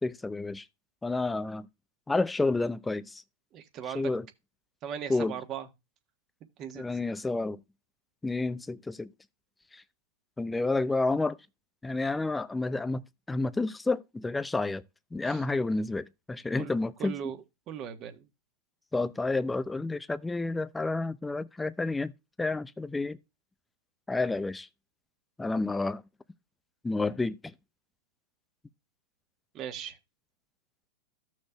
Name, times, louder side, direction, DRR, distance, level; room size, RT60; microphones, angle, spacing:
voice 1, 0.0-0.6 1.0-1.7 2.1-3.2 3.8-4.3 5.1-5.4 6.7-7.6 8.2-9.1 9.7-9.8 10.4-11.4 11.8-13.0 13.3-14.8 15.1-17.3 18.9-22.1 22.4-23.2 24.1-24.7 25.4-26.0 26.8-27.5, left 3 dB, 10° left, 0.5 m, -30 dB
voice 2, 3.5-4.1 4.8-5.7 6.6-7.0 15.2-15.4 16.6-16.7 17.0-18.3 29.5-30.0, right 9 dB, 35° right, 1.3 m, -39 dB
14.0 x 6.4 x 2.3 m
hypercardioid pair, 115°, 0 cm